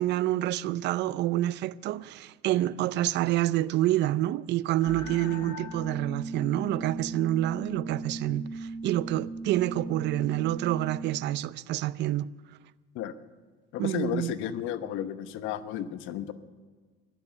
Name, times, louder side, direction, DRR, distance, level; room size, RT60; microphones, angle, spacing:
voice 1, 0.0-12.3 13.8-14.3, right 14 dB, 55° right, 0.5 m, -28 dB
sound 1, 4.8-11.2, right 2 dB, 85° left, 5.1 m, -38 dB
voice 2, 13.7-16.3, left 10 dB, 70° left, 1.1 m, -33 dB
15.0 x 12.0 x 7.1 m
cardioid pair, 120°, 21 cm